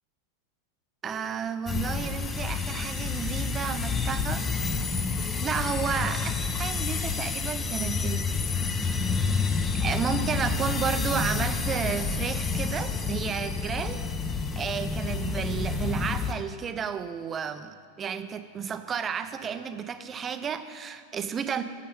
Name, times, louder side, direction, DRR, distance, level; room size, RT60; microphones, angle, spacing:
voice 1, 1.0-4.4 5.4-8.4 9.8-14.0 14.5-21.6, right 7 dB, 25° right, 10 dB, 0.6 m, -32 dB
sound 1, 1.7-16.3, left 4 dB, 15° left, 0.7 m, -29 dB
8.6 x 7.7 x 7.1 m, 2.1 s
figure-of-eight pair, 90°, 0 cm